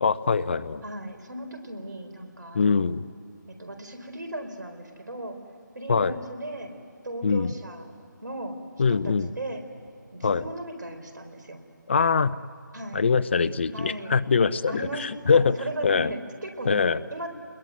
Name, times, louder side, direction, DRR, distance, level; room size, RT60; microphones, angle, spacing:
voice 1, 0.0-0.8 2.5-3.0 5.9-6.2 7.2-7.5 8.8-9.3 10.2-10.5 11.9-12.4 12.9-15.6 15.8-16.1 16.7-17.0, left 5 dB, 35° left, 16 dB, 0.7 m, -23 dB
voice 2, 0.8-2.9 3.5-5.3 5.7-7.9 8.2-8.6 8.9-9.6 10.1-11.6 12.7-13.0 13.7-14.1 14.7-16.8 17.1-17.3, right 1 dB, 70° right, 6 dB, 4.4 m, -37 dB
27.5 x 21.5 x 9.4 m, 2.5 s
figure-of-eight pair, 160°, 10 cm